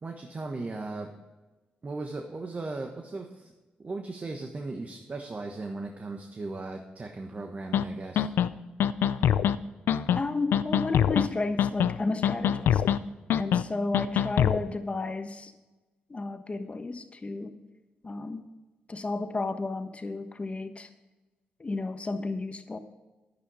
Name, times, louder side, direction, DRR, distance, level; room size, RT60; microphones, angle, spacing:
voice 1, 0.0-1.1 1.8-3.5 3.8-8.2, right 3 dB, 40° right, 3 dB, 1.3 m, -37 dB
sound 1, 7.7-7.8 8.2-8.5 8.8-9.6 9.9-10.2 10.5-11.3 11.6-12.0 12.2-13.0 13.3-13.6 13.9-14.6, left 9 dB, 80° left, 0.4 m, -23 dB
voice 2, 10.1-13.0 13.3-15.5 16.1-17.6 18.0-18.5 18.9-20.9 21.6-22.8, left 3 dB, 35° left, 8 dB, 1.3 m, -32 dB
10.0 x 9.8 x 4.9 m, 1.2 s
supercardioid pair, 50°, 4 cm